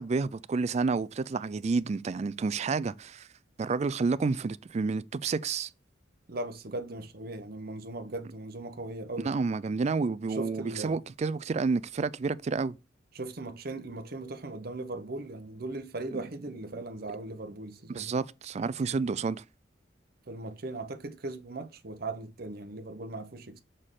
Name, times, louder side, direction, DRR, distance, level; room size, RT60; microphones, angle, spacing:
voice 1, 0.0-3.3 3.6-5.7 9.2-12.8 17.9-19.4, right 4 dB, 35° right, 0.3 m, -30 dB
voice 2, 6.3-9.3 10.3-11.0 13.1-18.1 20.3-23.6, right 2 dB, 55° right, 0.9 m, -38 dB
6.4 x 4.4 x 3.7 m
head